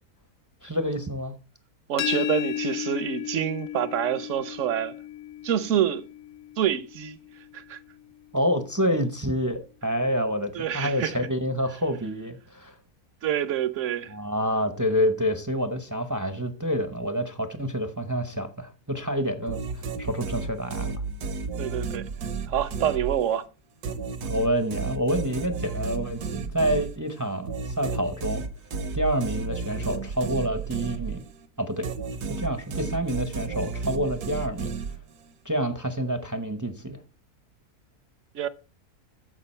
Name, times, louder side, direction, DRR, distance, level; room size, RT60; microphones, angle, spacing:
voice 1, 0.6-1.3 8.3-12.7 14.1-20.9 24.3-28.4 28.9-31.2 31.6-31.9 32.3-34.7 35.4-37.0, equal, 20° right, 0.6 m, -28 dB
voice 2, 1.9-5.0 5.4-6.1 6.6-7.2 7.5-7.8 10.5-11.2 13.2-14.1 21.6-22.1 22.5-23.4 38.3-38.5, right 10 dB, 60° right, 0.9 m, -27 dB
sound 1, 2.0-7.7, left 12 dB, 60° left, 0.8 m, -34 dB
sound 2, 19.5-23.4 23.8-31.5 31.8-35.3, right 4 dB, 80° right, 1.6 m, -33 dB
14.0 x 5.1 x 4.3 m
omnidirectional pair, 1.6 m